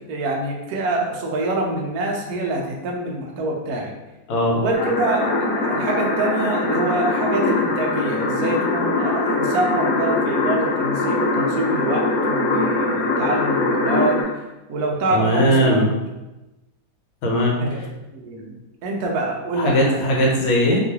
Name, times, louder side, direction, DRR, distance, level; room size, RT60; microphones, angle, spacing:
voice 1, 0.1-3.9 4.5-14.4 14.7-15.8 17.6-17.8 18.1-18.5 18.8-20.1, right 2 dB, 75° right, -1 dB, 0.8 m, -25 dB
voice 2, 4.3-4.6 15.1-15.9 17.2-17.6 19.5-20.8, equal, 80° left, -1 dB, 1.6 m, -19 dB
sound 1, 4.7-14.2, left 3 dB, 60° left, 1.4 m, -22 dB
3.0 x 2.9 x 2.8 m, 1.0 s
omnidirectional pair, 2.3 m